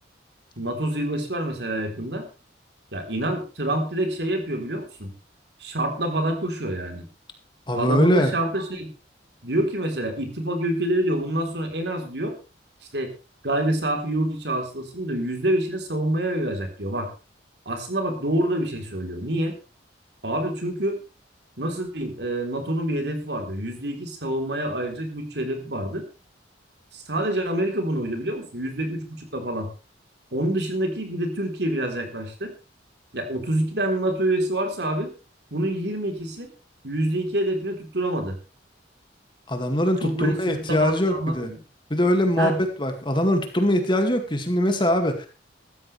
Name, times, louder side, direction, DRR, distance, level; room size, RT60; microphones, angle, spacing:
voice 1, 0.6-2.3 2.9-5.1 5.6-7.1 7.7-8.9 9.4-12.3 12.9-13.1 13.4-17.1 17.7-19.5 20.2-21.0 21.6-26.0 26.9-29.7 30.3-32.5 33.1-35.1 35.5-36.5 36.8-38.3 40.0-41.6 42.4-42.6, right 1 dB, 60° right, 4 dB, 3.7 m, -27 dB
voice 2, 7.7-8.3 39.5-41.5 41.9-45.3, left 1 dB, 25° left, 5 dB, 2.2 m, -22 dB
14.5 x 14.0 x 3.4 m, 0.32 s
head